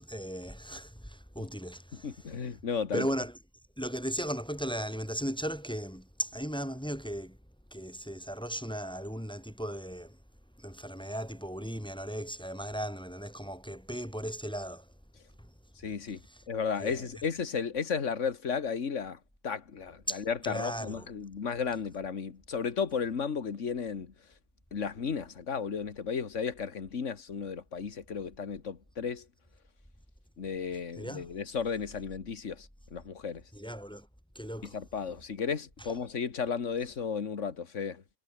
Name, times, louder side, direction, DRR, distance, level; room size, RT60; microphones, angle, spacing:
voice 1, 0.0-2.1 2.9-3.3 3.8-7.4 7.7-10.2 10.6-14.9 16.3-16.4 16.8-17.0 20.1-21.1 31.0-31.3 33.5-34.1 34.3-34.8, equal, 5° left, 6.0 m, -36 dB
voice 2, 1.9-3.1 15.8-16.2 16.5-24.1 24.7-29.3 30.4-33.4 34.6-38.0, left 6 dB, 55° left, 2.0 m, -34 dB
omnidirectional pair, 1.6 m